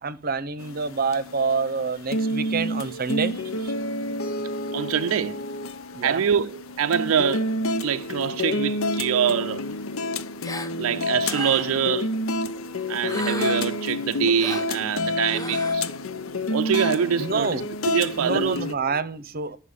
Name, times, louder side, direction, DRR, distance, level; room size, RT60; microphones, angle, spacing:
voice 1, 0.0-3.7 5.9-6.2 17.2-17.7 18.1-19.6, right 4 dB, 45° right, 0.7 m, -27 dB
sound 1, 0.6-18.7, left 1 dB, 75° left, 0.7 m, -29 dB
voice 2, 4.7-5.4 6.0-7.5 7.8-9.6 10.8-12.1 12.9-15.9 16.5-18.6, right 7 dB, 75° right, 0.4 m, -24 dB
Gasp, 10.4-10.7 11.2-11.8 13.0-13.8 14.4-14.7 15.3-15.7, left 2 dB, 15° left, 0.9 m, -34 dB
11.0 x 5.7 x 8.1 m
head